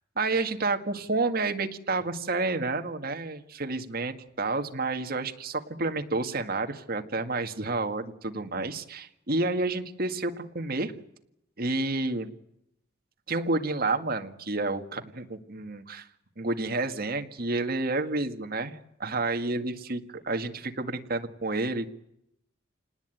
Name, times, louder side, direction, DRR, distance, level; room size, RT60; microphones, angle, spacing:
voice 1, 0.2-10.9 11.6-12.3 13.3-16.1 16.4-21.9, right 3 dB, 45° right, 6 dB, 1.9 m, -30 dB
28.5 x 19.5 x 9.2 m, 0.80 s
head